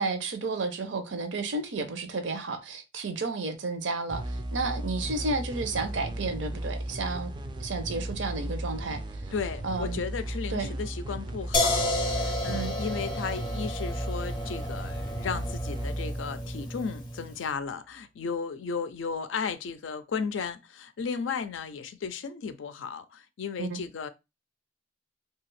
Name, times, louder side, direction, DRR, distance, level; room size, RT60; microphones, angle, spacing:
voice 1, 0.0-7.3 7.6-9.2 9.6-10.0 10.5-10.7 12.5-12.7 23.6-23.8, right 3 dB, 70° right, 0.6 m, -32 dB
sound 1, 4.1-17.4, right 1 dB, 25° right, 0.3 m, -36 dB
voice 2, 9.3-24.1, left 5 dB, 80° left, 0.4 m, -35 dB
sound 2, 11.5-17.3, left 1 dB, 25° left, 0.6 m, -31 dB
2.8 x 2.3 x 3.0 m
head